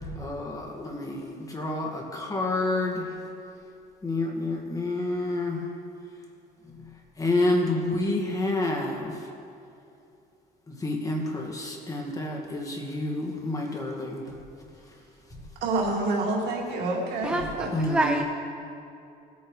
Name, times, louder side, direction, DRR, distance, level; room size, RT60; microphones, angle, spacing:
voice 1, 0.0-3.2 4.0-5.7 7.2-9.3 10.7-14.2 15.4-15.5 17.4-18.2, left 2 dB, 20° left, 0 dB, 1.9 m, -29 dB
voice 2, 15.6-17.7, right 2 dB, 80° right, -2 dB, 2.2 m, -28 dB
voice 3, 17.2-18.2, right 1 dB, 5° right, 4 dB, 0.6 m, -27 dB
18.5 x 8.7 x 3.2 m, 2.6 s
cardioid pair, 110°, 17 cm